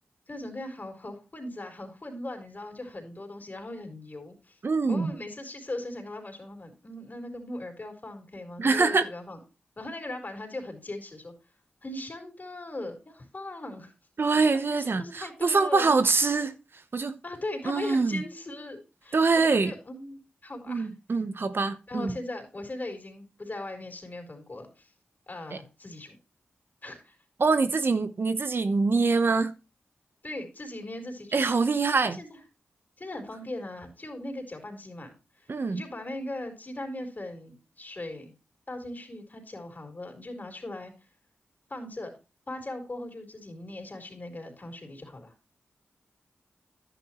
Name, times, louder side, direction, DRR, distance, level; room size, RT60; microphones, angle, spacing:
voice 1, 0.3-4.6 4.9-9.4 9.8-11.3 11.8-13.9 14.5-15.9 17.2-20.9 21.9-24.9 25.3-26.2 26.8-27.2 30.2-31.4 32.0-32.4 33.0-35.1 35.4-38.3 38.7-40.9 41.7-42.1 42.5-45.3, left 1 dB, 40° left, 4.1 m, -39 dB
voice 2, 4.6-5.1 8.6-9.1 14.2-16.6 16.9-17.2 17.7-18.2 19.1-19.7 20.7-22.2 25.5-25.6 27.4-29.6 31.3-32.2 35.5-35.8, right 4 dB, 55° right, 0.9 m, -24 dB
11.0 x 9.5 x 3.0 m
cardioid pair, 40°, 5 cm